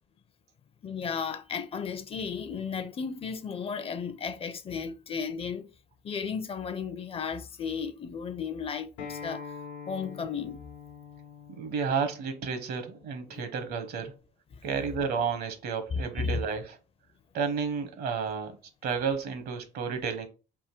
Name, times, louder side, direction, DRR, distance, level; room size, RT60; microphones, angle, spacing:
voice 1, 0.8-5.7 6.0-9.5 9.9-10.6 13.3-13.4 15.9-16.4, left 6 dB, 35° left, 0.5 m, -34 dB
Acoustic guitar, 9.0-14.2, left 6 dB, 90° left, 0.9 m, -45 dB
voice 2, 11.6-14.1 14.6-16.8 17.3-20.3, right 6 dB, 70° right, 1.0 m, -31 dB
3.6 x 2.6 x 4.4 m
cardioid pair, 110°, 17 cm